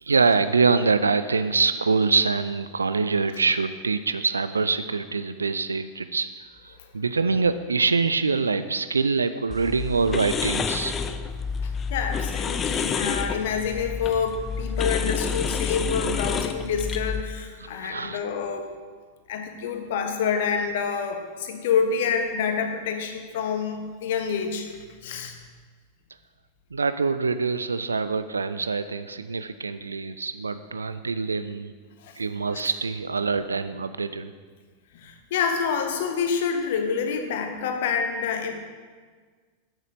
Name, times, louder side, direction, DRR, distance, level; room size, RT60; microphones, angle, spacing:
voice 1, 0.0-11.0 17.6-18.2 26.7-31.7 32.2-34.3, right 4 dB, 75° right, 12 dB, 0.3 m, -25 dB
sound 1, 9.5-17.2, left 6 dB, 25° left, 0.5 m, -29 dB
voice 2, 11.6-18.7 19.3-24.7 25.0-25.4 32.0-32.1 32.5-32.6 34.9-38.5, left 6 dB, 55° left, 5 dB, 1.2 m, -27 dB
8.2 x 8.1 x 5.1 m, 1.5 s
figure-of-eight pair, 90°, 0 cm